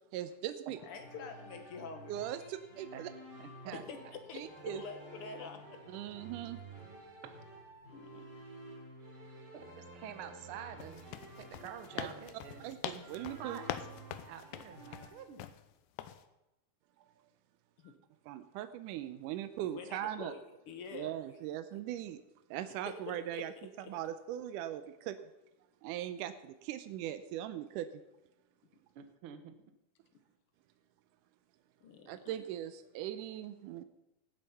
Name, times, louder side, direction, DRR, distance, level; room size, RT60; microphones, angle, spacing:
voice 1, 0.1-0.8 2.1-3.1 4.3-4.8 5.9-6.6 12.6-13.6 18.3-20.3 20.9-22.2 22.5-23.5 23.9-25.2 25.8-27.9 32.1-33.8, right 12 dB, 90° right, 11 dB, 2.2 m, -40 dB
sound 1, 0.7-15.1, right 2 dB, 35° right, 3.3 m, -52 dB
voice 2, 0.8-2.5 3.7-6.0 7.9-8.3 17.8-17.9 19.6-21.1 22.8-23.4 23.8-23.9 31.8-32.2, left 5 dB, 60° left, 7 dB, 1.5 m, -47 dB
voice 3, 3.4-3.8 7.2-7.4 9.5-12.7 13.4-13.7 14.3-15.5 28.9-29.5, right 8 dB, 65° right, 9 dB, 1.4 m, -47 dB
sound 2, 10.8-15.6 16.0-16.2, left 10 dB, 85° left, 2.3 m, -45 dB
17.0 x 7.8 x 5.6 m, 0.93 s
omnidirectional pair, 3.6 m